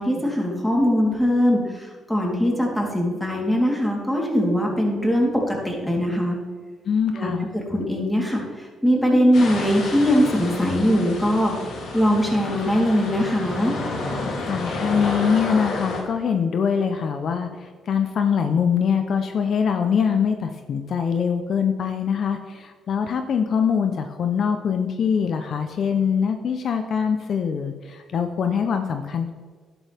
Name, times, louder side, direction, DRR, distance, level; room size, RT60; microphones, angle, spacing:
voice 1, 0.0-6.4 7.1-11.5 11.9-13.7, equal, 5° left, -2 dB, 3.6 m, -21 dB
voice 2, 6.8-7.5 14.4-29.3, left 7 dB, 60° left, 7 dB, 0.8 m, -23 dB
sound 1, 9.3-16.0, left 2 dB, 75° left, 3.0 m, -30 dB
12.0 x 11.0 x 3.6 m, 1.5 s
cardioid pair, 90°, 0 cm